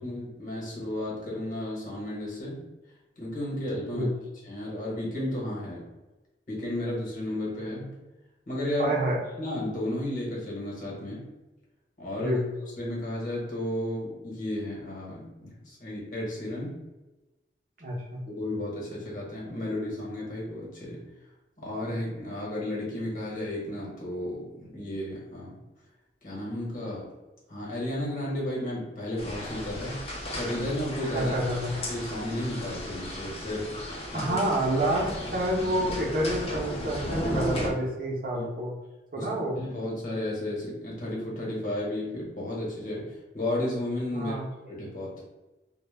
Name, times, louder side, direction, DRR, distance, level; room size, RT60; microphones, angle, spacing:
voice 1, 0.0-2.6 3.2-4.1 4.4-5.9 6.5-7.9 8.5-9.0 9.4-11.3 12.0-12.4 12.8-16.8 18.4-21.0 21.6-25.6 26.2-27.1 27.5-31.3 31.9-33.8 34.1-34.3 38.3-38.5 39.1-39.3 39.5-44.3 44.7-45.1, left 1 dB, 50° left, -5 dB, 0.9 m, -33 dB
voice 2, 8.8-9.2 12.2-12.5 17.8-18.2 31.1-31.7 34.1-38.7 39.1-39.6 44.1-44.5, right 1 dB, 50° right, -3 dB, 0.6 m, -28 dB
sound 1, 29.2-37.7, left 1 dB, 35° left, 0.4 m, -35 dB
2.1 x 2.0 x 3.2 m, 1.1 s
head